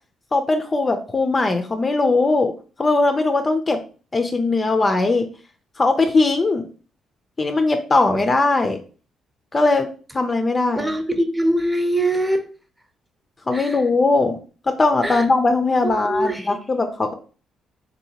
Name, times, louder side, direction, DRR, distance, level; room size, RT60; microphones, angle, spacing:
voice 1, 0.3-2.5 2.8-3.8 4.1-5.3 5.8-6.7 7.4-8.8 9.5-9.9 10.1-10.9 13.5-14.4 14.7-17.1, left 3 dB, 30° left, 6 dB, 0.4 m, -19 dB
voice 2, 10.8-12.5 13.5-13.8 15.0-15.2 15.8-16.5, right 1 dB, 10° right, 6 dB, 0.7 m, -22 dB
3.8 x 2.8 x 2.8 m, 0.37 s
cardioid pair, 90°, 0 cm